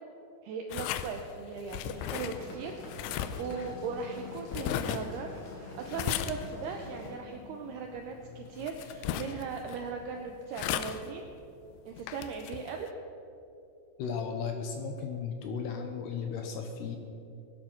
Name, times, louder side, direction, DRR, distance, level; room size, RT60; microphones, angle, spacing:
voice 1, 0.4-11.3 11.9-12.9, right 5 dB, 85° right, 3 dB, 2.3 m, -39 dB
sound 1, 0.7-12.9, left 10 dB, 90° left, 2.6 m, -38 dB
sound 2, 1.9-7.1, left 2 dB, 50° left, 3.3 m, -46 dB
voice 2, 14.0-17.0, left 6 dB, 70° left, 4 dB, 2.7 m, -35 dB
19.5 x 11.5 x 5.9 m, 2.7 s
omnidirectional pair, 5.8 m